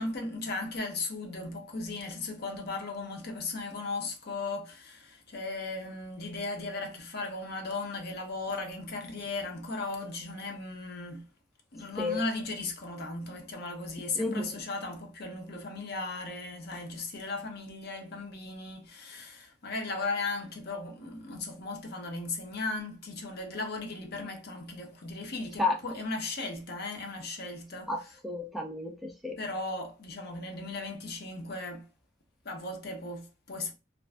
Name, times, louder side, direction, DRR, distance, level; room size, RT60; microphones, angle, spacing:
voice 1, 0.0-11.3 11.7-28.2 29.4-31.9 32.4-33.7, left 3 dB, 55° left, 0.6 m, -37 dB
voice 2, 14.2-14.5 25.6-25.7 27.9-28.0 28.2-29.4, left 2 dB, ahead, 0.3 m, -31 dB
2.5 x 2.4 x 2.2 m
head